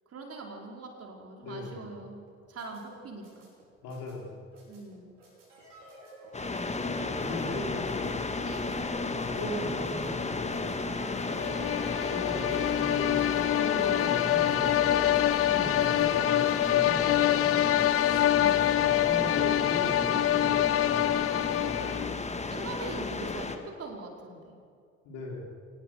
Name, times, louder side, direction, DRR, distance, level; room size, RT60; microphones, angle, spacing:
voice 1, 0.1-2.2 2.5-3.5 4.7-5.2 8.4-8.8 11.3-11.7 15.5-15.9 18.3-18.7 21.6-22.2 22.5-24.6, right 3 dB, 40° right, 0 dB, 4.9 m, -43 dB
voice 2, 1.4-1.8 3.8-4.4 6.8-8.2 9.1-10.7 12.1-14.8 15.6-17.7 18.8-20.9 25.0-25.5, left 2 dB, 60° left, -2 dB, 5.2 m, -38 dB
sound 1, 2.3-18.7, right 1 dB, 75° right, 5.8 m, -51 dB
sound 2, 6.3-23.6, left 3 dB, 20° left, 1.9 m, -33 dB
sound 3, 11.2-22.2, left 13 dB, 40° left, 0.6 m, -26 dB
25.0 x 19.5 x 6.7 m, 2.4 s
figure-of-eight pair, 50°, 37 cm